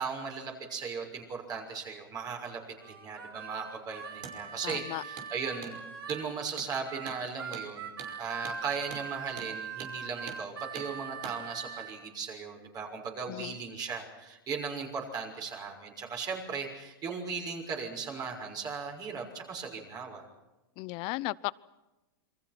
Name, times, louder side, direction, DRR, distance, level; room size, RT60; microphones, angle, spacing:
voice 1, 0.0-2.6 2.9-5.8 6.1-7.9 8.2-20.2, right 5 dB, 30° right, 2 dB, 6.3 m, -37 dB
Harmonica, 2.8-6.3 6.8-11.9, right 6 dB, 80° right, 4.1 m, -42 dB
Hammer, 4.1-4.4 4.7-4.8 5.2-5.3 5.6-5.8 6.1-6.2 6.6-6.7 7.1-7.2 7.5-7.7 8.0-8.1 8.5-8.6 8.9-9.1 9.4-9.5 9.8-10.0 10.3-10.4 10.8-10.9 11.2-11.4, right 8 dB, 55° right, 5.3 m, -44 dB
voice 2, 4.6-5.0 13.3-13.6 20.8-21.5, left 21 dB, 45° left, 20 dB, 0.8 m, -35 dB
28.0 x 24.5 x 6.0 m, 1.0 s
hypercardioid pair, 125°, 12 cm